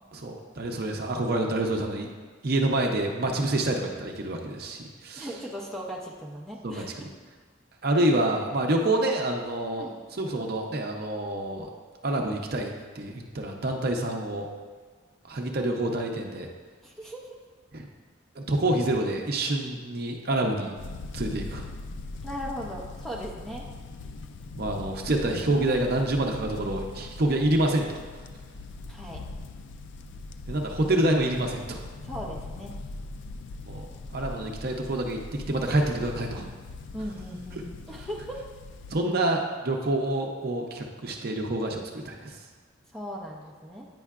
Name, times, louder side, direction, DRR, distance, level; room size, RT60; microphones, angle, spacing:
voice 1, 0.1-2.1 2.4-5.3 6.6-7.1 7.8-9.9 10.2-11.7 12.0-14.5 15.3-16.5 17.7-17.9 18.4-20.7 21.1-21.6 24.6-28.0 30.5-31.8 33.6-33.9 34.1-36.5 38.9-42.4, right 1 dB, 50° right, 2 dB, 0.6 m, -27 dB
voice 2, 5.1-6.9 9.8-10.0 16.8-17.4 22.2-23.6 28.9-29.2 32.0-32.7 36.9-38.4 42.9-43.9, equal, ahead, -2 dB, 0.6 m, -38 dB
sound 1, 20.8-39.0, left 3 dB, 65° left, 0.3 m, -41 dB
9.1 x 5.5 x 2.4 m, 1.5 s
head